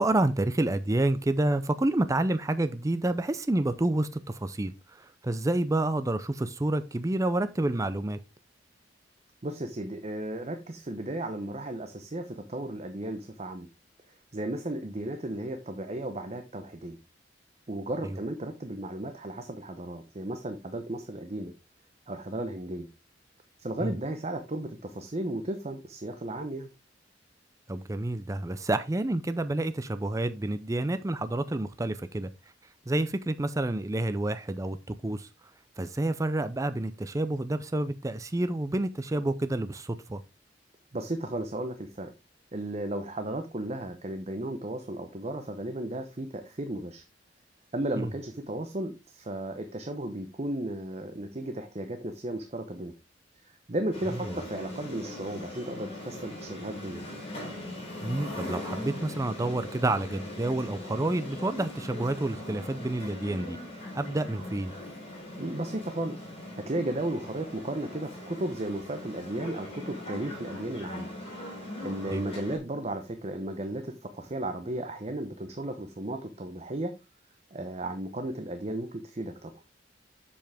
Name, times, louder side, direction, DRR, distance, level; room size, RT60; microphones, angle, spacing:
voice 1, 0.0-8.2 18.0-18.2 23.8-23.9 27.7-32.3 32.9-34.8 35.0-35.3 35.8-40.2 48.0-48.1 54.3-54.4 58.0-63.6 63.9-64.7 72.1-72.2, right 2 dB, 15° right, 0.5 m, -29 dB
voice 2, 9.4-13.7 14.3-17.0 17.7-21.5 22.1-22.9 23.6-26.7 40.9-42.1 42.5-47.0 47.7-52.9 53.7-57.1 65.4-66.2 66.6-71.1 71.8-77.0 77.5-79.5, right 1 dB, 35° right, 0.8 m, -34 dB
sound 1, 53.9-72.6, left 1 dB, 30° left, 4.6 m, -40 dB
7.5 x 7.1 x 3.4 m
head